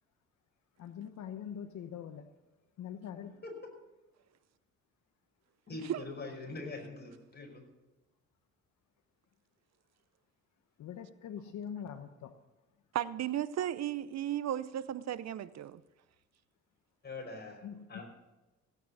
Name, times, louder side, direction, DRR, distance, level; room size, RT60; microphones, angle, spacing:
voice 1, 0.8-2.3 2.8-3.4 10.8-12.4 17.6-18.0, left 8 dB, 70° left, 1.0 m, -43 dB
voice 2, 5.7-7.6 17.0-18.0, left 3 dB, 35° left, 5.5 m, -43 dB
voice 3, 12.9-15.8, right 11 dB, 60° right, 0.7 m, -35 dB
16.5 x 9.2 x 7.1 m
cardioid pair, 90°, 30 cm